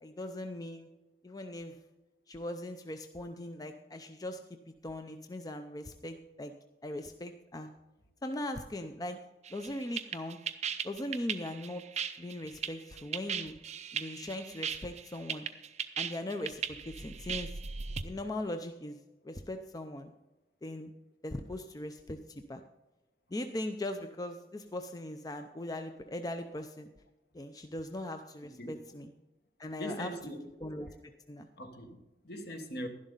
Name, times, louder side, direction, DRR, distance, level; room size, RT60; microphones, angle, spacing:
voice 1, 0.0-0.9 1.2-1.7 2.3-4.4 4.8-6.5 6.8-7.7 8.2-9.2 9.5-10.4 10.8-11.8 12.2-13.5 13.9-15.5 16.0-17.5 18.0-19.0 19.2-20.1 20.6-20.9 21.2-22.6 23.3-26.9 27.3-29.1 29.6-30.1 30.6-30.9 31.3-31.5, left 1 dB, 20° left, 0.5 m, -39 dB
sound 1, 9.5-18.0, right 7 dB, 40° right, 0.6 m, -37 dB
voice 2, 28.4-28.9 29.8-30.5 30.8-31.0 31.6-32.9, equal, 60° left, 1.4 m, -42 dB
11.5 x 11.0 x 3.9 m
head